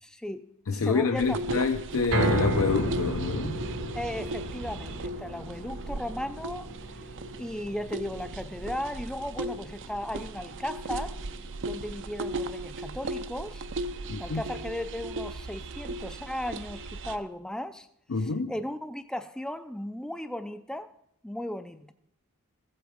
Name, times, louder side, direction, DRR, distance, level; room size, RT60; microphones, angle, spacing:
voice 1, 0.0-1.6 3.9-6.7 7.4-11.2 11.6-13.7 14.2-17.9 18.2-20.9 21.2-21.9, left 1 dB, 5° left, 0.4 m, -36 dB
voice 2, 0.7-3.6 14.1-14.4 18.1-18.5, left 4 dB, 65° left, 0.6 m, -27 dB
sound 1, 1.2-17.2, right 2 dB, 60° right, 0.6 m, -37 dB
sound 2, 2.1-14.4 14.8-14.9 15.3-15.4, right 1 dB, 90° right, 2.0 m, -35 dB
14.5 x 7.9 x 5.0 m
head